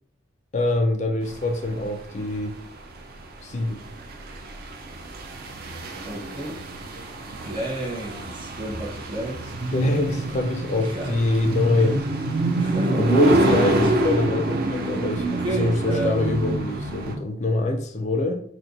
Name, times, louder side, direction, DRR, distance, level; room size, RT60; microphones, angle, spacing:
voice 1, 0.5-2.6 3.4-3.8 9.7-12.0 13.0-15.3 15.6-18.4, left 2 dB, 35° left, 5 dB, 0.4 m, -24 dB
sound 1, 1.3-17.1, right 2 dB, 50° right, 0.5 m, -27 dB
voice 2, 6.0-6.6 7.4-9.5 10.8-11.2 11.8-11.9 12.6-13.4 13.7-13.9 15.3-16.4, right 1 dB, 25° right, -4 dB, 1.2 m, -32 dB
4.4 x 2.1 x 3.9 m, 0.64 s
head